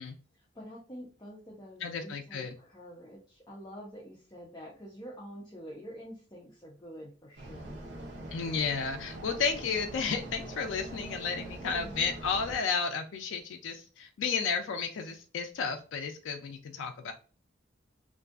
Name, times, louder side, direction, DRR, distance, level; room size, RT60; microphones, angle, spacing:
voice 1, 0.3-7.8 11.6-12.0, equal, 20° left, -3 dB, 0.5 m, -47 dB
voice 2, 1.8-2.5 8.3-17.1, left 5 dB, 75° left, 4 dB, 0.4 m, -32 dB
sound 1, 7.4-12.6, right 1 dB, 60° right, 0.8 m, -43 dB
2.5 x 2.3 x 2.3 m, 0.38 s
head